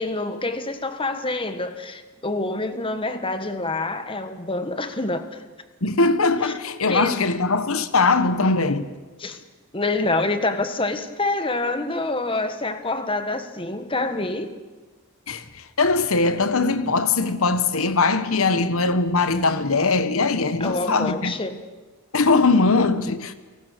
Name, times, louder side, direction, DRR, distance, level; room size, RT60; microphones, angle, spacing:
voice 1, 0.0-5.4 6.4-6.5 6.9-7.2 9.2-9.4 9.7-14.5 20.6-21.6, left 2 dB, 25° left, 1.5 m, -26 dB
voice 2, 5.8-8.9 15.3-15.4 15.8-21.3 22.1-23.3, left 3 dB, 70° left, 1.3 m, -21 dB
29.5 x 19.0 x 6.8 m
head